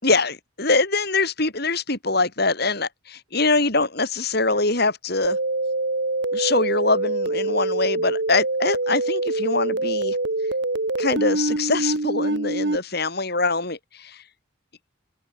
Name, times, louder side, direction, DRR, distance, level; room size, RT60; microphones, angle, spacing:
voice 1, 0.0-5.4 6.3-10.2 11.0-14.2, left 3 dB, 50° left, 5.2 m, -23 dB
sound 1, 5.2-12.8, right 2 dB, 55° right, 1.9 m, -25 dB
head